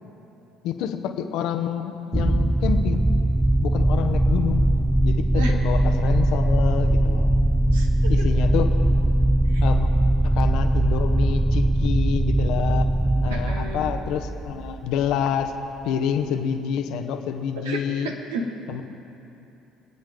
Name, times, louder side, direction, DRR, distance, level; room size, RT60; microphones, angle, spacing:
voice 1, 0.6-3.1 3.6-4.7 5.0-7.3 8.1-8.8 9.6-9.9 10.2-12.9 13.2-15.5 15.8-18.1 18.7-18.9, left 8 dB, 65° left, 7 dB, 0.9 m, -28 dB
sound 1, 2.1-15.1, right 1 dB, 10° right, 0.4 m, -21 dB
voice 2, 7.7-8.3 9.5-9.6 13.2-13.9 17.6-18.4, right 2 dB, 80° right, 1 dB, 1.4 m, -32 dB
26.0 x 8.9 x 3.8 m, 2.9 s
hypercardioid pair, 60°, 0 cm